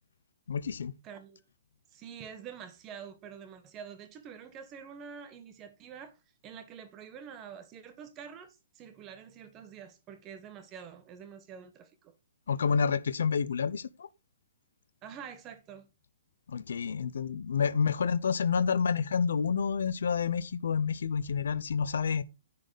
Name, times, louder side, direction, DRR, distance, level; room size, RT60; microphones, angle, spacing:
voice 1, 0.5-0.9 12.5-14.1 16.5-22.2, left 6 dB, 80° left, 0.6 m, -29 dB
voice 2, 1.0-1.4 1.9-6.2 6.4-12.1 15.0-15.9, right 7 dB, 20° right, 1.3 m, -47 dB
10.5 x 4.1 x 5.0 m
hypercardioid pair, 160°, 0 cm